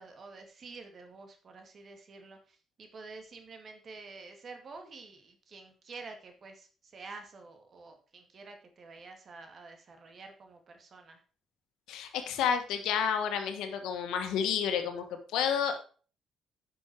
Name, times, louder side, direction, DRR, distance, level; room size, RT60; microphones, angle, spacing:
voice 1, 0.0-11.2, right 3 dB, 50° right, 5 dB, 2.2 m, -49 dB
voice 2, 11.9-15.7, left 8 dB, 90° left, 7 dB, 1.5 m, -30 dB
10.0 x 6.2 x 4.7 m, 0.39 s
cardioid pair, 90°, 0 cm